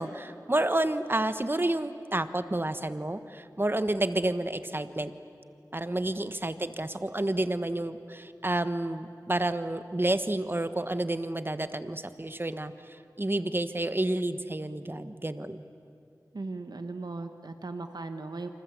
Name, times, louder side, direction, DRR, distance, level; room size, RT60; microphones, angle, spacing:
voice 1, 0.0-5.1 5.7-15.6, right 1 dB, 30° right, 11 dB, 1.3 m, -30 dB
voice 2, 16.3-18.5, right 3 dB, 85° right, 7 dB, 1.2 m, -37 dB
27.5 x 26.0 x 8.3 m, 2.5 s
wide cardioid pair, 50°, 7 cm